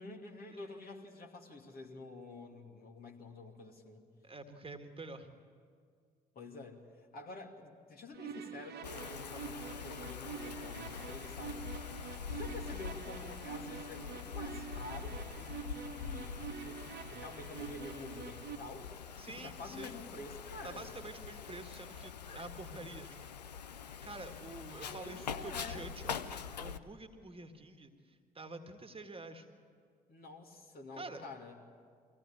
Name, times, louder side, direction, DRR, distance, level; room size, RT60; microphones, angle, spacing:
voice 1, 0.0-4.0 6.3-6.8 7.1-11.7 12.3-18.9 19.3-20.9 24.8-25.9 30.1-31.5, left 3 dB, 45° left, 0 dB, 2.7 m, -49 dB
voice 2, 4.2-5.3 19.2-20.0 20.6-23.1 24.0-29.5 30.9-31.3, right 2 dB, 25° right, 7 dB, 1.9 m, -48 dB
sound 1, 8.1-18.6, right 7 dB, 55° right, 1.0 m, -47 dB
Wind, 8.8-26.8, left 6 dB, 85° left, 0.5 m, -44 dB
23.5 x 16.5 x 8.9 m, 2.1 s
figure-of-eight pair, 40°, 21 cm